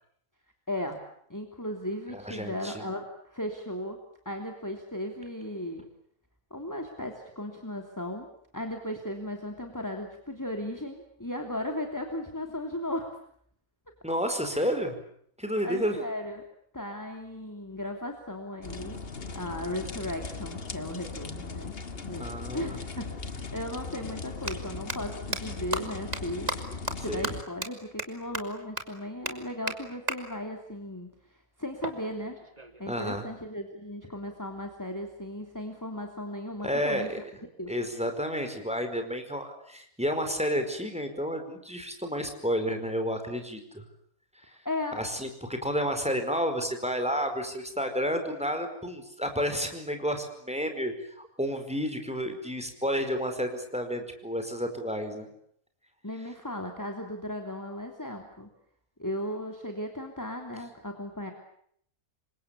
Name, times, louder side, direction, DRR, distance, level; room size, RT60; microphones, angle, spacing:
voice 1, 0.7-1.0 1.3-4.0 4.2-5.8 6.5-8.3 8.5-13.2 14.5-14.7 15.6-16.4 16.7-19.0 19.3-21.7 22.0-22.3 22.5-26.5 27.0-32.4 32.8-37.2 37.6-37.7 44.5-45.0 56.0-58.5 59.0-61.3, left 1 dB, 10° left, 3 dB, 3.1 m, -36 dB
voice 2, 2.1-2.8 14.0-15.0 15.4-16.0 22.2-22.8 27.1-27.3 32.9-33.2 36.6-37.2 37.7-43.8 44.9-55.3, equal, 5° right, 7 dB, 4.8 m, -31 dB
sound 1, 18.6-27.4, left 4 dB, 45° left, 1.7 m, -39 dB
sound 2, 23.2-23.3 24.3-24.5 24.9-25.0 25.3-25.4 25.7-25.8 26.1-26.2 26.5-26.6 26.9-27.0 27.2-27.3 27.6-27.7 28.0-28.1 28.3-28.4 28.8-28.9 29.3-29.4 29.7-29.8 30.1-30.2 31.8-32.8, right 2 dB, 30° right, 2.8 m, -32 dB
28.0 x 24.5 x 8.5 m, 0.68 s
omnidirectional pair, 1.5 m